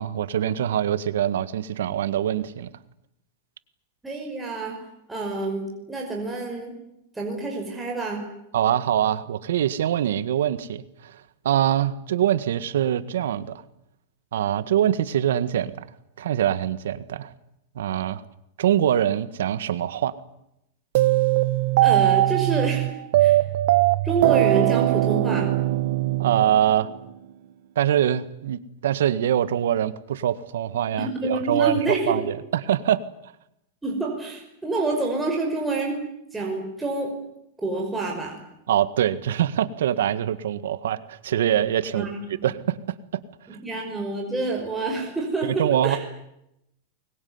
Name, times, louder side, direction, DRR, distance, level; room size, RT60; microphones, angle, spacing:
voice 1, 0.0-2.7 8.5-13.6 14.3-15.9 16.2-17.3 17.8-18.2 18.6-20.1 26.2-26.9 27.8-31.8 32.1-33.0 38.7-43.2 45.4-46.0, right 10 dB, 85° right, 14 dB, 1.8 m, -24 dB
voice 2, 4.0-4.8 5.1-6.7 7.2-8.2 21.8-22.9 23.2-23.4 24.0-25.5 31.0-32.2 33.8-36.0 36.3-37.1 37.6-38.4 41.9-42.5 43.5-46.0, right 3 dB, 5° right, -1 dB, 5.7 m, -27 dB
sound 1, 20.9-27.1, right 16 dB, 65° right, 1.5 m, -20 dB
25.0 x 21.5 x 9.7 m, 0.82 s
supercardioid pair, 150°, 0 cm